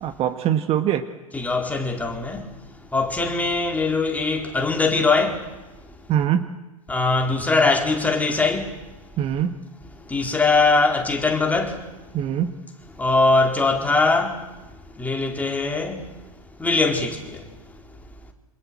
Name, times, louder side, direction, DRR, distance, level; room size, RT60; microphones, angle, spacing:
voice 1, 0.0-1.0 6.1-6.5 9.2-9.5 12.1-12.5, right 10 dB, 35° right, 1.8 m, -22 dB
voice 2, 1.3-2.6 2.9-5.5 6.9-8.8 10.0-11.9 12.9-14.5 14.9-16.1 16.6-17.5, left 3 dB, 10° left, 4.2 m, -21 dB
28.0 x 26.5 x 7.7 m
figure-of-eight pair, 95°, 18 cm